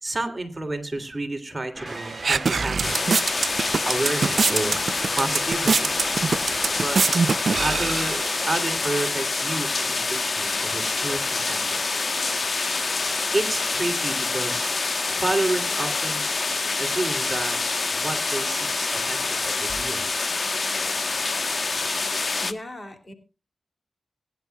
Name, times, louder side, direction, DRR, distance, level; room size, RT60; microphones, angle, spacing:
voice 1, 0.0-3.2 3.8-4.8 5.2-6.0 6.8-7.0 7.6-12.0 13.3-14.7 15.1-16.2 16.8-17.6 17.9-20.1, right 2 dB, 30° right, 5 dB, 3.0 m, -30 dB
sound 1, 1.7-6.9, equal, ahead, 2.3 m, -37 dB
sound 2, 1.9-8.8, right 4 dB, 65° right, 0.5 m, -25 dB
sound 3, 2.8-22.5, left 3 dB, 50° left, 1.2 m, -26 dB
voice 2, 22.4-23.1, left 1 dB, 35° left, 6 dB, 2.9 m, -37 dB
23.5 x 10.5 x 2.3 m, 0.30 s
cardioid pair, 60°, 0 cm